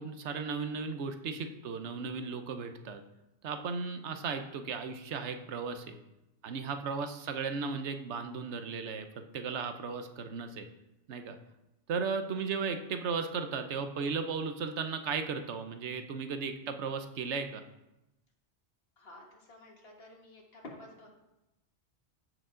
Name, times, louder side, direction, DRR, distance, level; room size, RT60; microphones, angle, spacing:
voice 1, 0.0-3.0 3.4-6.0 6.4-9.1 9.3-10.7 11.1-11.4 11.9-17.6, right 5 dB, 80° right, 7 dB, 1.0 m, -35 dB
voice 2, 19.0-21.1, left 2 dB, 60° left, 0 dB, 1.8 m, -51 dB
14.0 x 4.9 x 3.8 m, 0.94 s
omnidirectional pair, 1.1 m